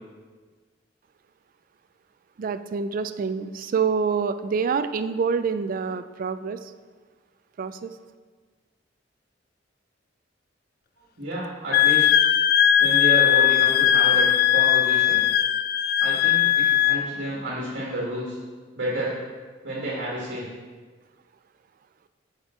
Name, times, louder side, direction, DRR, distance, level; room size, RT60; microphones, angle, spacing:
voice 1, 2.4-6.7 7.6-7.9, right 5 dB, 50° right, 11 dB, 0.3 m, -26 dB
voice 2, 11.2-12.2 12.8-15.2 16.0-18.4 18.7-19.2 19.6-20.5, right 1 dB, 70° right, -7 dB, 1.6 m, -30 dB
Wind instrument woodwind instrument, 11.7-17.0, left 11 dB, 55° left, 0.3 m, -19 dB
7.3 x 5.1 x 4.3 m, 1.5 s
head